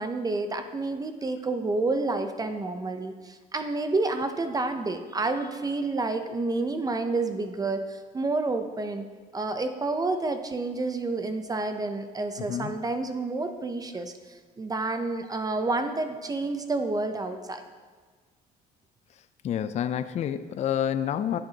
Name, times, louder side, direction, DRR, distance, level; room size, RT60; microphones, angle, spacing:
voice 1, 0.0-9.1 9.3-14.1 14.6-17.6, right 3 dB, 20° right, 8 dB, 0.6 m, -29 dB
voice 2, 12.4-12.8 19.4-21.4, left 9 dB, 40° left, 12 dB, 0.4 m, -28 dB
11.0 x 7.9 x 2.8 m, 1.5 s
cardioid pair, 110°, 17 cm